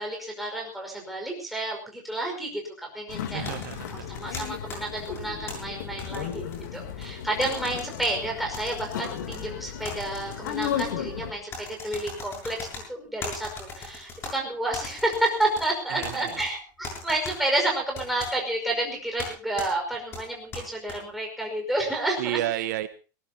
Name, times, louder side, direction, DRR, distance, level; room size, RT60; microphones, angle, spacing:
voice 1, 0.0-3.5 3.9-22.4, right 1 dB, ahead, 0 dB, 5.3 m, -30 dB
sound 1, 3.1-11.3, left 9 dB, 85° left, 3.2 m, -35 dB
voice 2, 3.3-4.1 15.9-16.4 22.2-22.9, right 14 dB, 70° right, 12 dB, 1.1 m, -31 dB
sound 2, 3.4-5.5 6.0-7.1 7.4-8.1 8.5-9.4 9.8-10.9 11.5-12.8 13.2-14.3 14.7-15.7 16.0-16.5 16.8-17.3 17.9-18.3 19.2-19.3 19.6-19.7 20.1-21.0, left 3 dB, 25° left, 7.2 m, -38 dB
21.5 x 19.0 x 2.9 m, 0.36 s
supercardioid pair, 160°, 10 cm